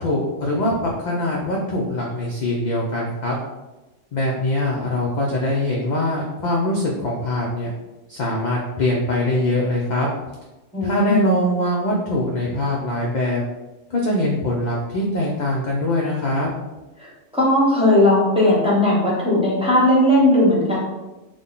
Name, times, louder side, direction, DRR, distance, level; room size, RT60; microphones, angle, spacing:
voice 1, 0.0-3.4 4.1-7.7 8.1-10.1 10.8-13.4 13.9-16.5, left 1 dB, 55° left, -3 dB, 0.5 m, -22 dB
voice 2, 10.7-11.2 17.0-20.8, left 1 dB, 5° right, -7 dB, 1.0 m, -17 dB
3.7 x 2.2 x 3.6 m, 1.1 s
omnidirectional pair, 1.2 m